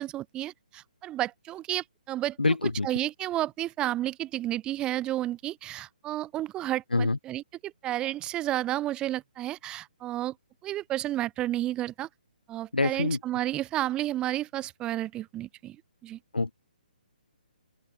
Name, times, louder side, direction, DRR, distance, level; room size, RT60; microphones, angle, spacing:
voice 1, 0.0-2.4 2.8-10.3 10.6-12.1 12.5-15.8 16.0-16.2, right 14 dB, 20° right, 4.5 m, -31 dB
voice 2, 2.4-2.9 6.9-7.2 12.7-13.2 16.3-16.5, left 3 dB, 90° left, 6.2 m, -25 dB
open air
figure-of-eight pair, 145°, 5 cm